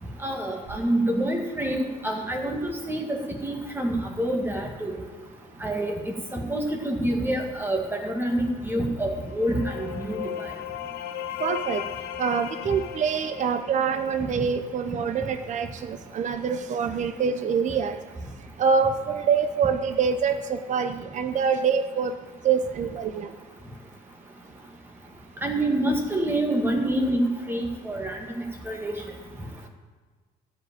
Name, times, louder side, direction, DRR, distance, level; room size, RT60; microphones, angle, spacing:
voice 1, 0.2-4.9 5.6-10.4 25.4-28.9, right 1 dB, 15° right, 1 dB, 1.9 m, -27 dB
sound 1, 9.0-14.7, left 11 dB, 90° left, 0.6 m, -36 dB
voice 2, 11.4-11.8 12.2-18.0 18.6-22.1 22.4-23.3, right 6 dB, 45° right, 8 dB, 0.7 m, -25 dB
13.0 x 5.2 x 9.1 m, 1.4 s
cardioid pair, 110°, 17 cm